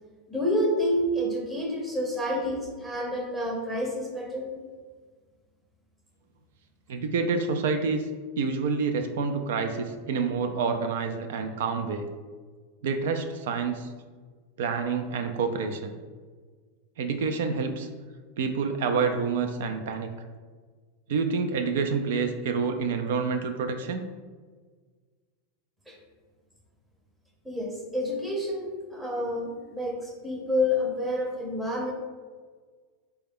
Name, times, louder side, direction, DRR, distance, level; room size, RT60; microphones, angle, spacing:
voice 1, 0.3-4.5 25.9-26.0 27.4-31.9, left 1 dB, 5° right, -1 dB, 0.6 m, -29 dB
voice 2, 6.9-8.1 8.4-12.1 12.8-13.9 14.6-15.9 17.0-17.9 18.4-20.1 21.1-24.0, right 5 dB, 75° right, 6 dB, 0.3 m, -28 dB
3.9 x 2.2 x 3.5 m, 1.5 s
supercardioid pair, 150°, 0 cm